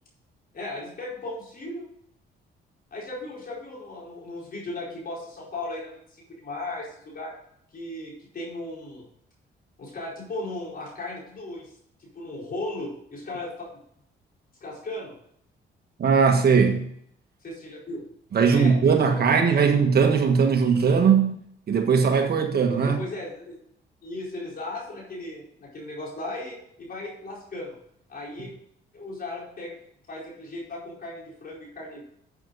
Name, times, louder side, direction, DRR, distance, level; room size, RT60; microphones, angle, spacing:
voice 1, 0.5-1.9 2.9-7.4 7.7-9.1 9.8-11.7 12.0-13.8 14.6-15.1 17.4-18.0 18.5-19.7 22.8-23.6 24.0-27.8 28.1-28.5 28.9-29.7 30.1-32.0, left 2 dB, 50° left, -3 dB, 4.6 m, -36 dB
voice 2, 16.0-16.9 18.3-21.3 21.7-23.0, right 6 dB, 50° right, 4 dB, 1.6 m, -19 dB
9.9 x 8.1 x 4.1 m, 0.69 s
cardioid pair, 90°, 20 cm